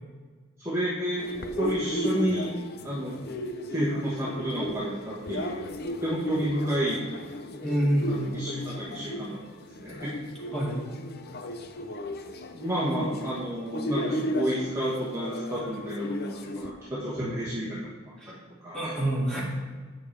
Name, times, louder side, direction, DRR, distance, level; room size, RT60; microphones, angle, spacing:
voice 1, 0.6-1.3 1.6-2.5 2.8-3.2 3.7-5.7 6.0-7.0 8.1-10.1 12.5-17.9 18.3-18.9, equal, 15° right, -9 dB, 1.3 m, -31 dB
sound 1, 1.2-16.7, left 1 dB, 50° left, 0.5 m, -35 dB
voice 2, 7.6-8.4 10.5-10.8 17.2-17.3 18.2-18.3 18.7-19.4, right 1 dB, 5° left, -7 dB, 2.4 m, -27 dB
8.7 x 6.5 x 3.3 m, 1.5 s
head